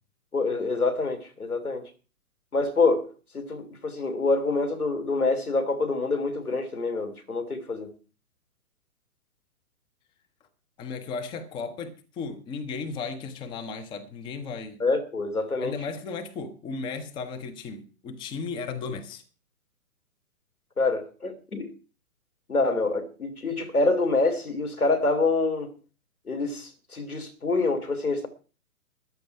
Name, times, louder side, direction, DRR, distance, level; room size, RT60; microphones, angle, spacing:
voice 1, 0.3-1.9 2.5-3.1 3.3-7.9 14.8-15.7 20.8-21.7 22.5-25.7 26.3-28.3, left 3 dB, 80° left, 3.3 m, -26 dB
voice 2, 10.8-14.8 15.6-19.2, left 4 dB, 10° left, 0.8 m, -35 dB
14.0 x 10.5 x 4.8 m
figure-of-eight pair, 125°, 43 cm